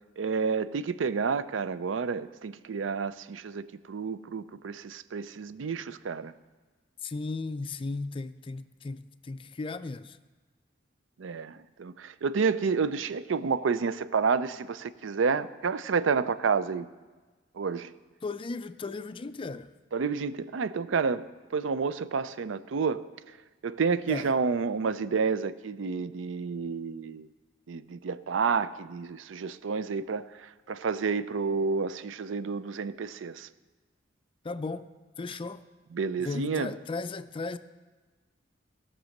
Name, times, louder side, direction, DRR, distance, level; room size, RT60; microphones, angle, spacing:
voice 1, 0.2-6.3 11.2-16.9 17.5-17.9 19.9-23.1 23.6-27.3 27.7-33.5 35.9-36.7, right 5 dB, 90° right, 0.4 m, -30 dB
voice 2, 7.0-10.2 18.2-19.7 24.1-24.3 34.4-34.9 35.2-35.6 36.2-37.6, left 3 dB, 30° left, 0.4 m, -36 dB
16.0 x 6.1 x 6.4 m
head